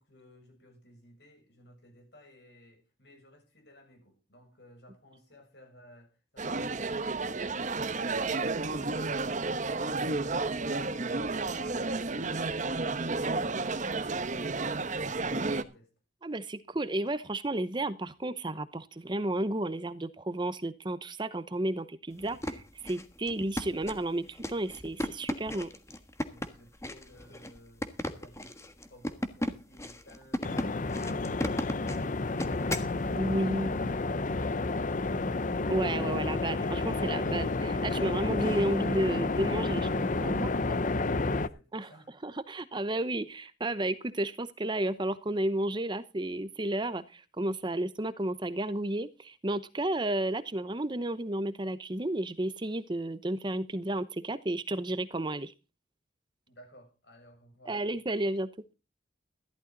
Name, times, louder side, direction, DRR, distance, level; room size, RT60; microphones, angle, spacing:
voice 1, 0.0-10.0 10.3-15.9 26.3-30.4 39.7-42.1 56.5-57.8, equal, 65° left, 6.9 m, -57 dB
sound 1, 6.4-15.6, right 3 dB, 45° right, 1.0 m, -31 dB
voice 2, 16.2-25.7 33.2-33.8 35.7-40.5 41.7-41.9 42.2-55.5 57.7-58.5, right 1 dB, 25° right, 0.8 m, -32 dB
sound 2, 22.2-32.9, left 1 dB, 15° left, 1.4 m, -36 dB
sound 3, 30.4-41.5, left 3 dB, 45° left, 0.7 m, -30 dB
14.0 x 12.0 x 3.9 m
head